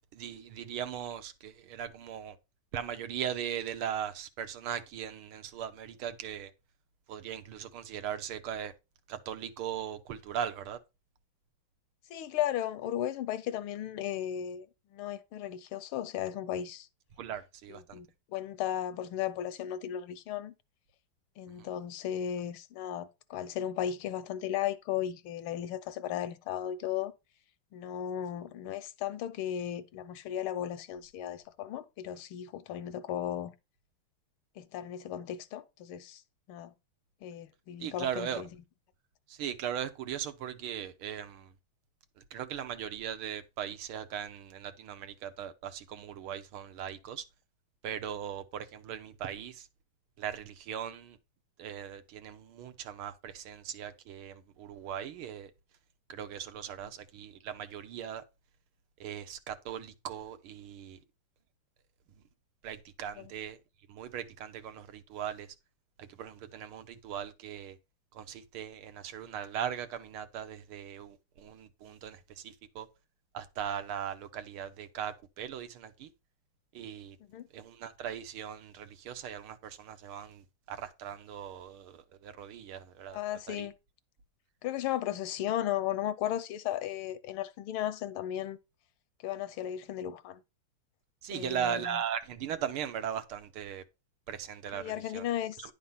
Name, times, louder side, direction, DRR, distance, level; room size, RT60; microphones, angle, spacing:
voice 1, 0.1-2.4 2.7-6.5 7.1-8.7 9.1-10.8 17.2-18.0 21.6-21.7 37.8-38.4 39.3-41.5 42.3-47.2 47.8-49.7 50.2-51.2 51.6-55.5 56.1-58.2 59.0-61.0 62.6-63.6 63.9-65.5 66.0-67.8 68.1-72.9 73.3-76.1 76.7-77.2 77.5-83.2 83.5-83.7 91.2-93.8 94.3-95.3, right 9 dB, 80° right, 1.8 m, -39 dB
voice 2, 12.1-16.9 17.7-20.5 21.4-27.1 27.7-33.5 34.6-36.2 36.5-36.7 37.2-38.5 63.2-63.3 77.3-77.5 83.1-83.7 84.6-88.6 89.2-90.4 91.3-92.0 94.7-95.7, left 11 dB, 80° left, 1.6 m, -35 dB
10.5 x 4.2 x 5.6 m
omnidirectional pair, 2.3 m